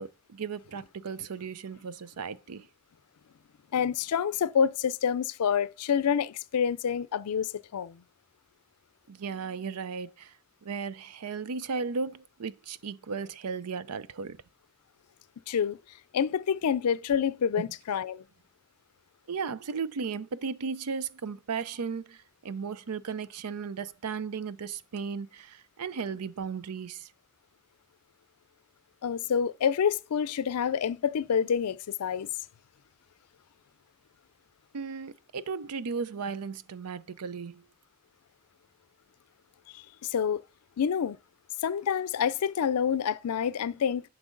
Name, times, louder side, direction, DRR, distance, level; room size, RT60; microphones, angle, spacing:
voice 1, 0.0-2.6 9.1-10.3 10.6-14.4 19.3-27.1 34.7-37.6, right 5 dB, 85° right, 0.5 m, -35 dB
voice 2, 3.7-8.0 15.5-15.8 16.1-18.2 29.0-32.3 39.7-40.4 40.8-41.2 41.6-44.0, left 7 dB, 85° left, 0.4 m, -27 dB
10.0 x 6.1 x 3.8 m
head